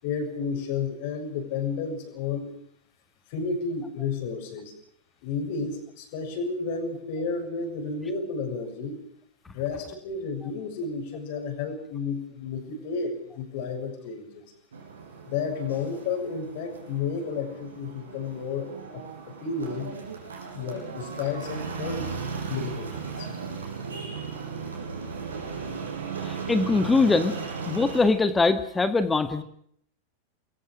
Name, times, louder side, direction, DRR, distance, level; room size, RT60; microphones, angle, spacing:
voice 1, 0.0-2.5 3.3-4.7 5.2-9.0 9.5-14.4 15.3-19.0 19.4-19.9 20.5-22.1 22.5-23.3, left 5 dB, 50° left, 5 dB, 7.0 m, -32 dB
sound 1, 14.7-28.1, right 5 dB, 70° right, 6.1 m, -36 dB
voice 2, 26.2-27.4 27.7-29.4, left 3 dB, 10° left, 10 dB, 1.8 m, -22 dB
29.5 x 22.0 x 5.0 m, 0.65 s
figure-of-eight pair, 90°, 0 cm